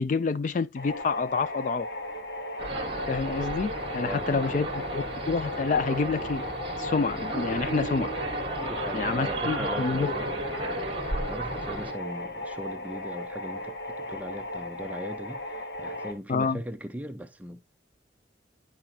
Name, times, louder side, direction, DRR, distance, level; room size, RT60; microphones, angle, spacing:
voice 1, 0.0-1.9 3.1-4.7 4.9-6.4 6.8-8.1 8.9-10.1 16.3-16.6, left 4 dB, 40° left, 0.3 m, -28 dB
sound 1, 0.8-16.1, left 1 dB, 75° left, 1.3 m, -37 dB
sound 2, 2.6-11.9, right 2 dB, 30° right, 1.3 m, -33 dB
voice 2, 4.0-4.7 8.6-17.6, equal, 10° right, 0.6 m, -39 dB
10.5 x 5.0 x 2.7 m
head